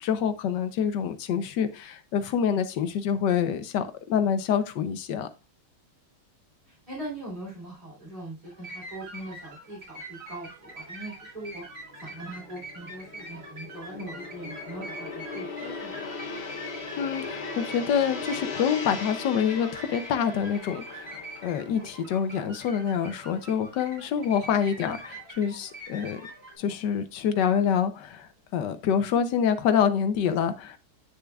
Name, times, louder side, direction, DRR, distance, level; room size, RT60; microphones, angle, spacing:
voice 1, 0.0-5.3 17.0-26.2 26.6-30.8, left 7 dB, 70° left, 11 dB, 1.3 m, -26 dB
voice 2, 6.6-11.6 12.0-15.9, right 1 dB, 20° right, -8 dB, 3.3 m, -41 dB
sound 1, 8.4-26.5, right 1 dB, 65° right, 4.7 m, -44 dB
Gong, 11.5-24.0 24.3-24.6, left 4 dB, 50° left, 0.8 m, -39 dB
9.4 x 6.5 x 2.3 m, 0.28 s
omnidirectional pair, 2.2 m